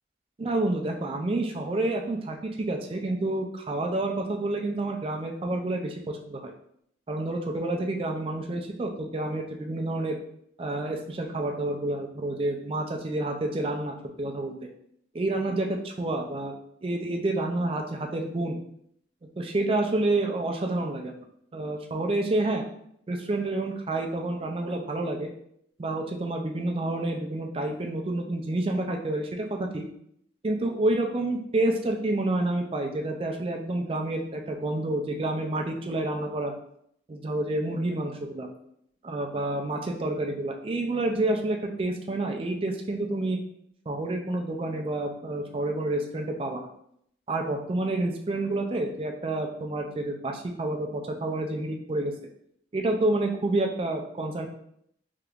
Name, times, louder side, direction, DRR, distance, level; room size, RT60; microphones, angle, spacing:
voice 1, 0.4-6.5 7.1-10.2 10.6-14.5 15.1-16.5 16.8-18.6 19.4-21.3 21.5-22.6 23.1-25.3 25.8-29.8 30.4-36.5 37.1-38.5 39.0-43.4 43.9-46.7 47.3-52.1 52.7-54.5, right 2 dB, 30° right, 3 dB, 0.3 m, -29 dB
3.5 x 2.8 x 2.4 m, 0.71 s
head